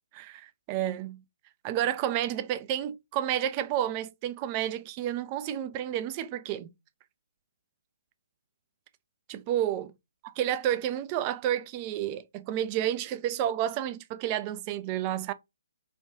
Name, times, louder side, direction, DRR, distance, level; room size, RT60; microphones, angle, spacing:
voice 1, 0.1-1.2 1.6-6.7 9.3-9.9 10.4-15.3, right 11 dB, 30° right, 0.4 m, -30 dB
4.3 x 2.3 x 2.6 m
figure-of-eight pair, 140°, 0 cm